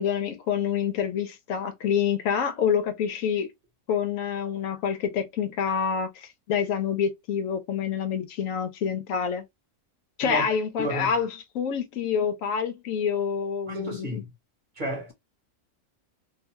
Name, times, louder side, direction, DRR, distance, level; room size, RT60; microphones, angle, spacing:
voice 1, 0.0-3.5 3.9-9.4 10.2-14.2, left 7 dB, 75° left, 1.0 m, -27 dB
voice 2, 10.8-11.1 13.7-14.3 14.8-15.1, left 1 dB, 40° right, 1.0 m, -31 dB
2.6 x 2.2 x 2.7 m
omnidirectional pair, 1.4 m